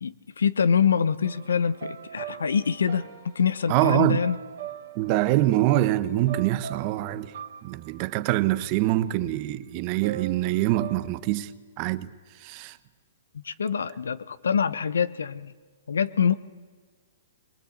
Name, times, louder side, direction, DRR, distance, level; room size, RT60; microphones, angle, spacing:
voice 1, 0.0-3.1 3.3-4.4 13.3-15.5 15.9-16.3, left 7 dB, 85° left, 1.0 m, -25 dB
sound 1, 1.2-9.2 10.0-11.0, right 9 dB, 65° right, 2.7 m, -42 dB
voice 2, 3.7-4.2 5.0-7.3 7.6-11.5 11.8-12.1 12.4-12.8, right 15 dB, 40° right, 1.0 m, -24 dB
22.5 x 20.0 x 8.7 m
hypercardioid pair, 140°, 0 cm